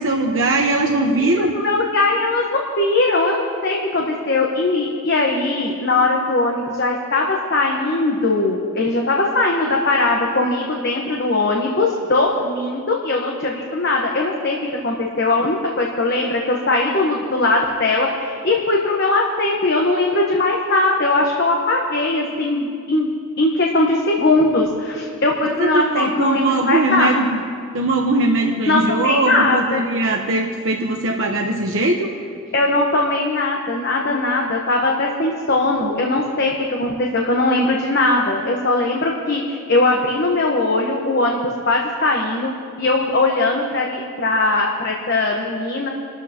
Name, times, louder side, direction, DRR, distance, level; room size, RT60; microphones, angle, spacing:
voice 1, 0.0-1.6 25.6-27.4 27.7-32.2, right 2 dB, 60° right, 1 dB, 1.0 m, -20 dB
voice 2, 1.2-23.1 23.4-27.1 28.7-29.8 32.5-42.5 42.8-45.9, left 2 dB, 50° left, -1 dB, 1.1 m, -20 dB
28.0 x 13.0 x 2.9 m, 2.3 s
head